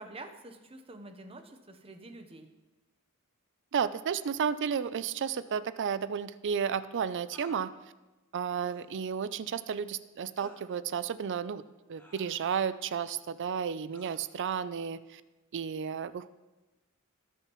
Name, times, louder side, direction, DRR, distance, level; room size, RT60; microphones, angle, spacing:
voice 1, 0.0-2.5, right 2 dB, 25° right, 7 dB, 0.9 m, -47 dB
voice 2, 3.7-7.7 8.3-11.6 11.9-15.2 15.5-16.3, right 7 dB, 55° right, 14 dB, 0.4 m, -32 dB
sound 1, 5.4-5.6 7.3-7.7 8.6-8.9 10.4-10.7 11.9-12.7 13.9-14.2, equal, 10° left, 1.4 m, -54 dB
18.5 x 6.8 x 3.1 m, 1.1 s
head